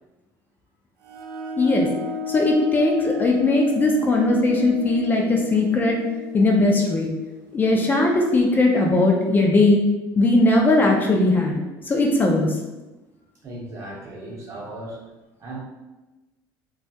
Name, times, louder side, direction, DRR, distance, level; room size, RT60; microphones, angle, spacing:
sound 1, 1.1-8.5, left 3 dB, 75° right, 0.4 m, -34 dB
voice 1, 1.6-1.9 2.3-6.0 6.3-7.1 7.5-9.8 10.2-12.6, left 2 dB, 25° left, 0 dB, 0.4 m, -19 dB
voice 2, 13.4-15.0 15.4-15.6, right 1 dB, 40° right, -3 dB, 0.7 m, -36 dB
2.3 x 2.0 x 2.7 m, 1.1 s
supercardioid pair, 100°, 8 cm